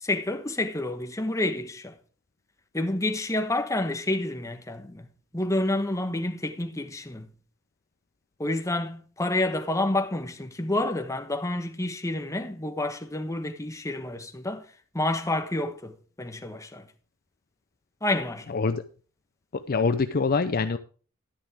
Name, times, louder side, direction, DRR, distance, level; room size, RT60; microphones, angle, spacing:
voice 1, 0.0-1.9 2.7-5.1 5.3-7.3 8.4-14.6 14.9-16.8 18.0-18.5, left 2 dB, 15° left, 1.1 m, -29 dB
voice 2, 18.5-18.8 19.5-20.8, left 4 dB, 45° left, 0.5 m, -25 dB
11.0 x 10.5 x 3.5 m
head